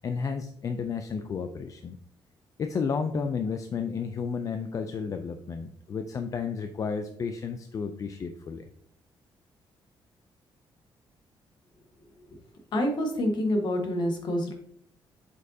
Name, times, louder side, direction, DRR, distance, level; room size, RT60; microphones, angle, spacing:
voice 1, 0.0-2.0 2.6-8.6, left 5 dB, 35° left, 7 dB, 0.4 m, -32 dB
voice 2, 12.7-14.5, equal, 55° left, 3 dB, 1.4 m, -27 dB
7.8 x 5.3 x 2.7 m, 0.65 s
cardioid pair, 165°, 9 cm